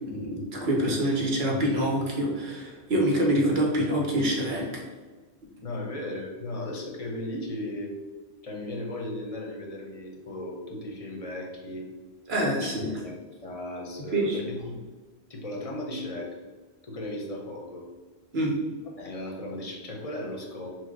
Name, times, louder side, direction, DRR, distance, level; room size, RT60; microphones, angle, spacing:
voice 1, 0.0-4.9 12.3-12.9 14.1-14.4 18.3-18.5, right 1 dB, 65° right, -1 dB, 1.1 m, -26 dB
voice 2, 5.6-7.9 8.4-11.9 12.6-12.7 13.0-14.8 15.3-16.3 16.8-17.8 19.0-20.7, left 1 dB, 35° left, 0 dB, 0.7 m, -36 dB
4.5 x 2.1 x 4.6 m, 1.3 s
omnidirectional pair, 1.1 m